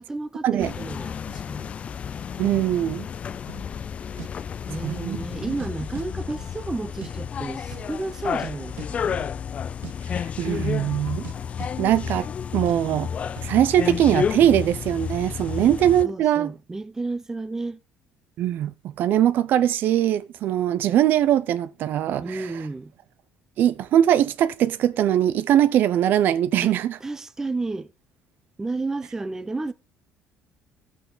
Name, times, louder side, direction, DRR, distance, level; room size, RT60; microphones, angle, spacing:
voice 1, 0.0-1.7 4.7-9.2 15.6-15.7 16.0-17.8 22.2-22.9 26.6-27.9 28.6-29.7, right 3 dB, 15° right, 0.7 m, -32 dB
sound 1, 0.6-16.0, left 7 dB, 35° left, 0.5 m, -31 dB
voice 2, 2.4-3.1 4.8-5.2 5.5-5.6 10.1-11.3 11.8-12.3 12.5-13.1 13.4-16.5 18.4-22.5 23.6-27.0, right 11 dB, 60° right, 0.5 m, -21 dB
sound 2, 3.5-3.7 4.2-4.3 4.8-5.1 5.4-6.1 6.3-7.1 7.4-7.5 7.7-8.5 8.8-8.9 9.1-9.4 9.6-9.9 10.5-10.8 11.0-12.4 12.7-12.8 13.3-13.6 13.9-14.2 14.4-14.5, right 12 dB, 75° right, 1.8 m, -40 dB
12.5 x 8.3 x 3.9 m
cardioid pair, 135°, 4 cm